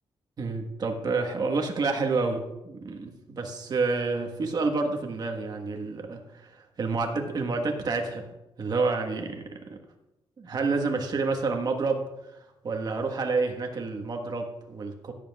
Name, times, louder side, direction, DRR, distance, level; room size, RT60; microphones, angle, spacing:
voice 1, 0.4-9.8 10.4-12.3 12.6-15.1, right 3 dB, 40° right, 3 dB, 1.4 m, -29 dB
16.5 x 9.4 x 2.4 m, 0.95 s
wide cardioid pair, 150°, 10 cm